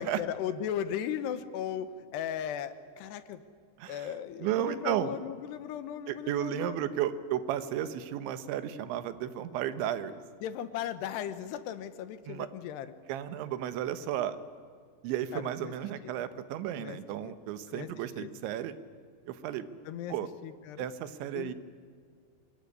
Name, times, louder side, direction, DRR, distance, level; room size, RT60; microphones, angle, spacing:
voice 1, 0.0-3.4 3.9-6.9 10.4-12.9 15.3-15.7 16.0-16.1 16.7-17.0 17.7-17.9 18.2-18.3 19.9-20.1 20.4-20.9 21.4-21.5, left 9 dB, 75° left, 12 dB, 3.0 m, -37 dB
voice 2, 4.4-5.1 6.1-10.2 12.3-12.5 13.1-14.4 15.0-18.8 19.3-19.7 20.1-20.3 20.8-21.5, right 11 dB, 90° right, 12 dB, 3.5 m, -33 dB
25.0 x 22.0 x 9.8 m, 2.1 s
omnidirectional pair, 5.2 m